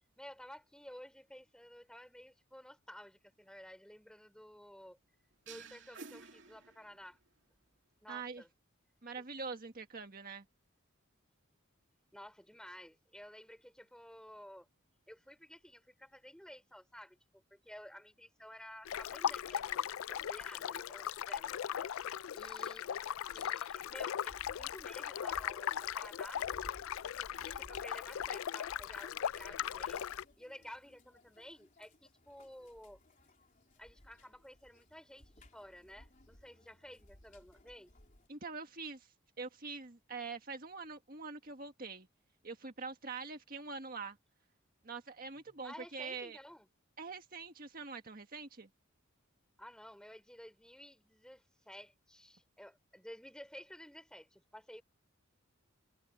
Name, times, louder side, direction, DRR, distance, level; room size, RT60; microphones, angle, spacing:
voice 1, 0.2-5.0 5.5-7.2 8.0-8.5 9.2-9.3 12.1-14.7 15.1-21.5 22.3-22.8 23.3-26.5 27.0-30.1 30.4-33.0 33.8-37.9 45.6-46.7 49.6-54.8, equal, 5° left, 3.6 m, -53 dB
sound 1, 5.5-7.2, right 4 dB, 60° right, 2.7 m, -52 dB
voice 2, 8.1-8.4 9.0-10.4 38.3-39.1 39.4-42.1 42.4-44.2 44.8-46.4 47.0-48.7, right 4 dB, 45° right, 1.7 m, -44 dB
sound 2, 18.8-30.2, left 9 dB, 85° left, 0.4 m, -38 dB
sound 3, 24.3-38.3, left 1 dB, 40° left, 3.5 m, -61 dB
head